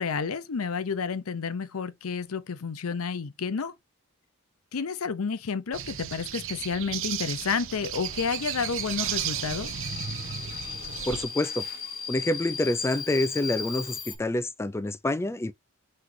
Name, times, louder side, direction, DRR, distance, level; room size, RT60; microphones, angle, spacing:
voice 1, 0.0-3.7 4.7-9.7, left 5 dB, 75° left, 0.6 m, -30 dB
sound 1, 5.7-11.2, right 10 dB, 65° right, 0.6 m, -34 dB
Subway metro underground, 8.1-14.2, left 5 dB, 45° left, 0.9 m, -37 dB
voice 2, 11.1-11.7 12.1-15.5, left 1 dB, 10° left, 0.3 m, -27 dB
5.9 x 3.1 x 2.6 m
head